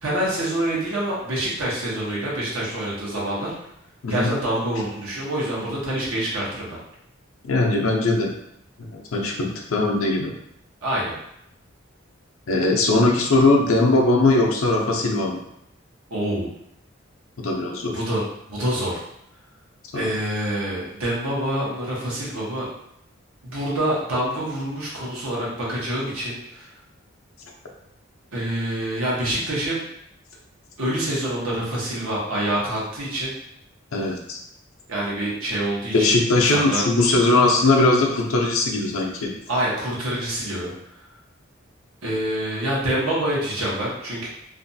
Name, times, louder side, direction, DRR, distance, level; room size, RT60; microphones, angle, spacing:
voice 1, 0.0-3.5 4.1-6.8 10.8-11.1 16.1-16.5 17.8-19.0 19.9-22.7 23.4-26.7 28.3-29.8 30.8-33.3 34.9-36.8 39.5-40.7 42.0-44.3, right 1 dB, 90° right, -6 dB, 0.9 m, -26 dB
voice 2, 7.4-8.3 8.8-10.3 12.5-15.4 17.4-18.0 19.9-20.1 33.9-34.4 35.9-39.3, left 2 dB, 85° left, 0 dB, 0.5 m, -20 dB
2.5 x 2.2 x 2.6 m, 0.77 s
head